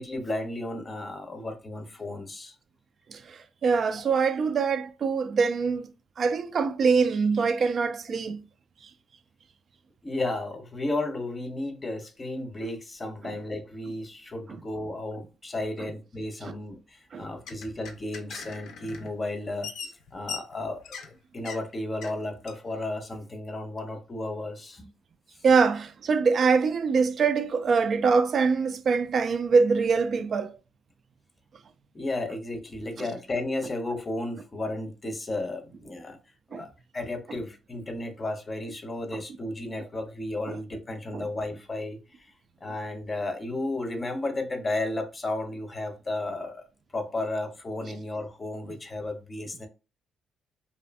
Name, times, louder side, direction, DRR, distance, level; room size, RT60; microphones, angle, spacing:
voice 1, 0.0-2.6 10.0-21.0 21.3-24.9 31.9-36.2 36.5-36.7 36.9-42.3 42.6-46.6 46.9-49.7, left 2 dB, 30° left, 0.6 m, -33 dB
voice 2, 3.1-5.9 6.2-8.4 16.5-16.6 17.1-17.3 25.4-30.5 36.5-36.7 40.5-40.6 41.1-41.3, right 5 dB, 50° right, 0.3 m, -24 dB
sound 1, 17.2-19.1 19.4-21.1 21.4-21.6 22.0-22.2 22.5-22.6, left 6 dB, 80° left, 0.5 m, -40 dB
2.6 x 2.4 x 2.2 m
cardioid pair, 90°, 0 cm